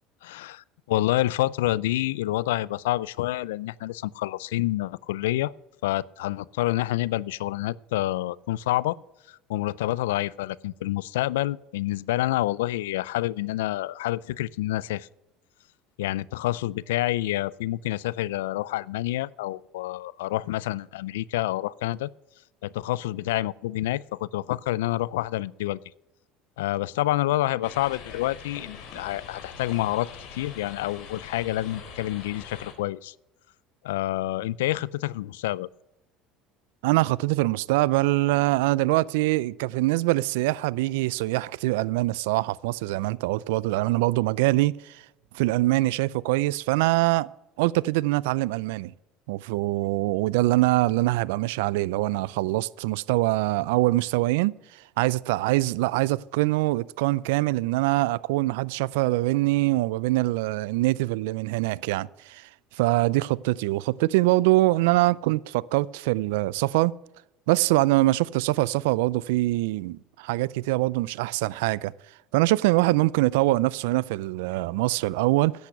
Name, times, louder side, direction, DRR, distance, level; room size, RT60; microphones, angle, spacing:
voice 1, 0.2-5.5 5.8-9.0 9.3-15.1 16.0-22.1 22.6-25.8 26.6-33.1 33.8-35.7, left 16 dB, 85° left, 0.3 m, -28 dB
sound 1, 27.6-32.7, left 6 dB, 65° left, 3.4 m, -43 dB
voice 2, 36.8-45.0 45.3-47.3 47.6-48.9 49.3-54.5 55.0-62.5 62.8-66.9 67.5-71.9 72.3-75.5, right 19 dB, 80° right, 0.3 m, -24 dB
10.5 x 8.3 x 6.6 m
supercardioid pair, 85°, 0 cm